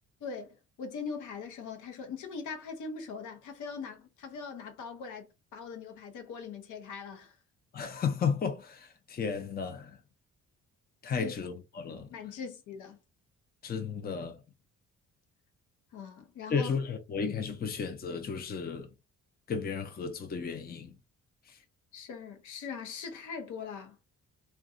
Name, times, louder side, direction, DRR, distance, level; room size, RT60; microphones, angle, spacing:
voice 1, 0.2-7.4 11.2-11.3 12.1-13.0 15.9-16.7 21.9-24.0, left 5 dB, 75° left, 0.7 m, -41 dB
voice 2, 7.7-10.0 11.0-12.2 13.6-14.4 16.5-18.9 19.5-21.0 21.5-21.6, left 6 dB, 30° left, 0.5 m, -33 dB
2.7 x 2.2 x 2.4 m
cardioid pair, 90°, 30 cm